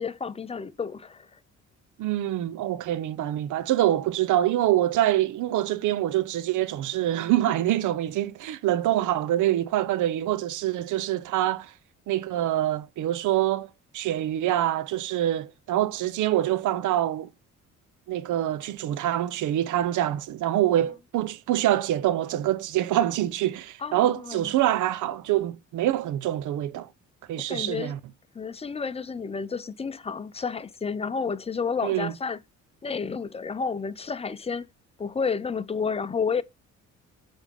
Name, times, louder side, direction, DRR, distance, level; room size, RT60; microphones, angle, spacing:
voice 1, 0.0-1.4 23.8-24.5 27.5-27.9 28.3-32.4 32.8-34.7 35.0-36.4, left 5 dB, 20° left, 0.6 m, -31 dB
voice 2, 2.0-11.7 12.1-17.3 18.1-26.9 27.3-28.0 31.8-32.1, right 13 dB, 80° right, 0.7 m, -25 dB
7.2 x 3.6 x 5.3 m
cardioid pair, 90°, 30 cm